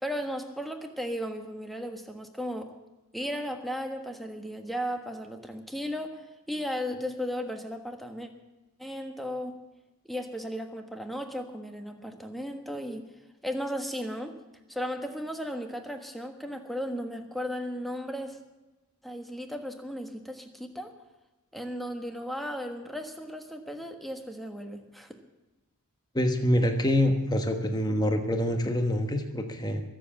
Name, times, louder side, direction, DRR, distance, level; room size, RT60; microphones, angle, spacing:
voice 1, 0.0-2.7 3.1-8.3 8.8-9.6 10.1-13.0 13.4-14.4 14.7-18.4 19.0-20.9 21.5-25.1, equal, ahead, 5 dB, 1.4 m, -35 dB
voice 2, 26.1-29.8, left 1 dB, 20° left, 5 dB, 1.2 m, -26 dB
22.5 x 7.7 x 7.2 m, 1.1 s
head